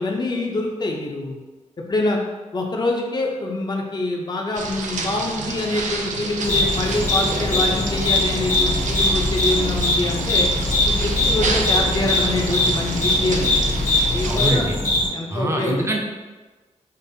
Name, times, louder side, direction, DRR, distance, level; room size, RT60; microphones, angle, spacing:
voice 1, 0.0-1.4 1.9-2.2 2.5-10.5 10.9-13.7 14.1-14.7 15.1-15.9, left 2 dB, 35° left, 0 dB, 0.5 m, -25 dB
sound 1, 4.5-14.5, right 3 dB, 85° right, 0.4 m, -29 dB
sound 2, 6.4-15.1, left 2 dB, 85° left, 1.0 m, -21 dB
voice 2, 14.3-14.7 15.3-16.0, right 1 dB, 20° right, 0 dB, 0.5 m, -23 dB
5.1 x 2.5 x 2.7 m, 1.3 s
wide cardioid pair, 145°, 13 cm